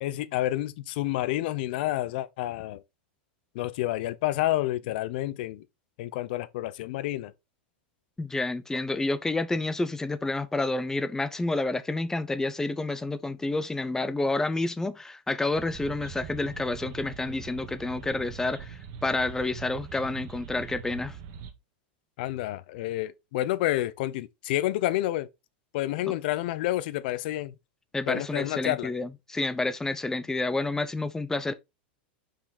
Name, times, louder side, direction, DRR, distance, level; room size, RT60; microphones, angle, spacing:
voice 1, 0.0-2.8 3.5-5.6 6.0-7.3 22.2-25.3 25.7-27.5 28.1-28.9, left 15 dB, 65° left, 0.8 m, -29 dB
voice 2, 8.2-21.2 27.9-31.5, left 2 dB, 10° left, 0.7 m, -29 dB
sound 1, 15.5-21.5, right 7 dB, 50° right, 1.7 m, -42 dB
6.1 x 4.7 x 4.1 m
supercardioid pair, 130°, 6 cm